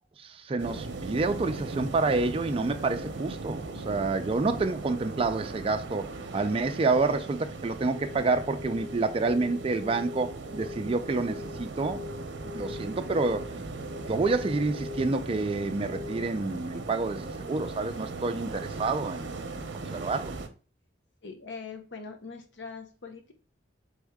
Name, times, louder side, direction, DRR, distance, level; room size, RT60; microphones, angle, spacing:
voice 1, 0.2-12.0 12.4-13.5 14.0-20.3, right 3 dB, 30° right, 0.4 m, -28 dB
sound 1, 0.6-20.5, right 3 dB, 70° right, 0.7 m, -38 dB
sound 2, 7.9-16.4, left 6 dB, 35° left, 0.6 m, -43 dB
voice 2, 21.2-23.3, left 4 dB, 80° left, 0.9 m, -42 dB
4.2 x 3.5 x 3.5 m
head